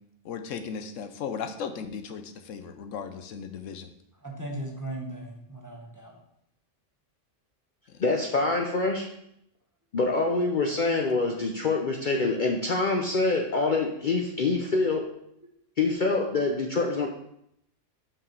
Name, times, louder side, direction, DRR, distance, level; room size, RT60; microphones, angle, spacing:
voice 1, 0.2-3.9 7.9-8.0, left 6 dB, 85° left, 8 dB, 1.0 m, -36 dB
voice 2, 4.2-6.2, right 1 dB, 15° right, -1 dB, 1.0 m, -37 dB
voice 3, 8.0-9.1 9.9-15.1 15.8-17.1, left 3 dB, 50° left, 1 dB, 0.7 m, -25 dB
5.8 x 4.9 x 5.3 m, 0.76 s
omnidirectional pair, 1.3 m